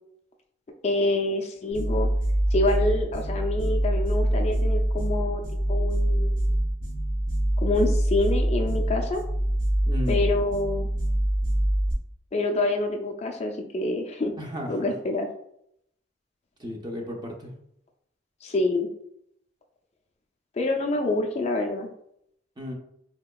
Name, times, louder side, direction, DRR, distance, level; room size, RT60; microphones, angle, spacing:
voice 1, 0.8-2.1 2.5-6.5 7.6-9.2 10.1-10.9 12.3-14.3 14.7-15.3 18.4-18.9 20.6-21.9, left 2 dB, 35° left, 3 dB, 0.4 m, -27 dB
sound 1, 1.7-11.9, right 1 dB, 75° right, 1.3 m, -25 dB
voice 2, 9.8-10.3 14.4-14.9 16.6-17.5 22.6-22.7, left 1 dB, 25° right, 1 dB, 0.6 m, -34 dB
4.1 x 2.8 x 2.2 m, 0.73 s
head